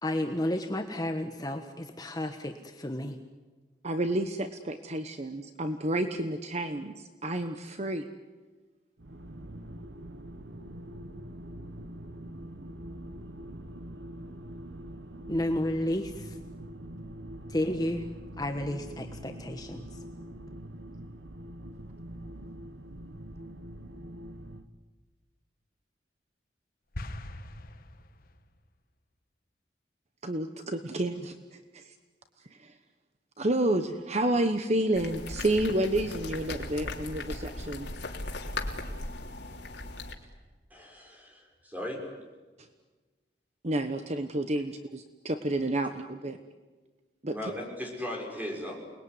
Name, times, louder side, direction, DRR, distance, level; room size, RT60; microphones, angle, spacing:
voice 1, 0.0-3.2 15.3-16.3 17.5-18.0 18.4-19.9, left 1 dB, 20° left, 5 dB, 1.3 m, -32 dB
voice 2, 3.8-8.0 30.2-31.9 32.5-32.7 33.4-37.9 42.6-42.7 43.6-46.4 47.2-47.5, right 1 dB, 40° right, 8 dB, 1.2 m, -30 dB
sound 1, 9.0-24.7, right 1 dB, 85° right, 1.5 m, -44 dB
sound 2, 26.9-28.6, left 1 dB, 55° left, 1.5 m, -41 dB
sound 3, 34.9-40.1, left 2 dB, 80° left, 3.2 m, -38 dB
voice 3, 40.7-42.0 47.3-48.8, left 1 dB, 10° right, 0 dB, 6.4 m, -37 dB
28.5 x 20.5 x 9.7 m, 1.3 s
head